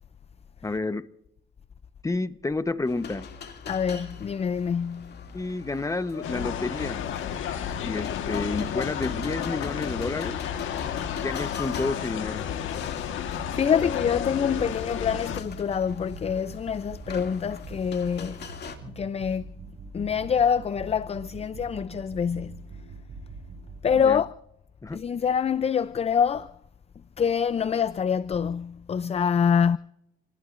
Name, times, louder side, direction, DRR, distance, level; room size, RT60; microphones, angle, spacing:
voice 1, 0.6-1.1 2.0-3.3 5.3-7.0 7.8-10.4 11.2-12.5 24.0-24.2 24.8-25.0, left 3 dB, 15° left, 1.0 m, -30 dB
sound 1, 2.9-18.8, left 6 dB, 55° left, 2.5 m, -42 dB
voice 2, 3.7-5.2 13.1-18.5 18.8-19.5 19.9-22.7 23.8-24.3 24.9-26.5 27.2-29.8, left 7 dB, 30° left, 0.5 m, -26 dB
sound 2, 6.2-15.4, left 9 dB, 80° left, 1.5 m, -32 dB
sound 3, 13.4-24.2, right 3 dB, 60° right, 7.5 m, -43 dB
28.0 x 19.0 x 2.6 m
cardioid pair, 90°, 20 cm